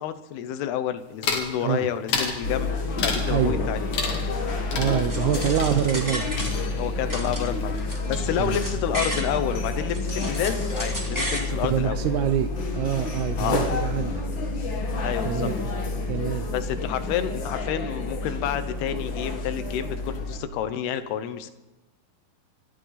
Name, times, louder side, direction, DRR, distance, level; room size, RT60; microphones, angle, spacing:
voice 1, 0.0-3.9 6.8-12.0 13.4-13.6 15.0-15.5 16.5-21.5, left 10 dB, 90° left, 10 dB, 3.1 m, -29 dB
sound 1, 1.2-1.5 2.1-2.4 3.0-3.4 3.9-4.4 4.7-7.0 7.3-7.9 8.1-8.7, left 5 dB, 65° left, 3.9 m, -31 dB
sound 2, 2.4-20.4, left 3 dB, 45° left, 1.6 m, -29 dB
voice 2, 3.3-3.6 4.7-6.3 8.4-8.6 11.4-14.2 15.3-15.6 16.1-16.5, right 11 dB, 85° right, 9 dB, 1.7 m, -26 dB
sound 3, 5.1-6.8 7.1-9.3 9.7-11.5, equal, 5° right, 2.5 m, -33 dB
26.0 x 13.0 x 4.1 m, 1.1 s
omnidirectional pair, 4.5 m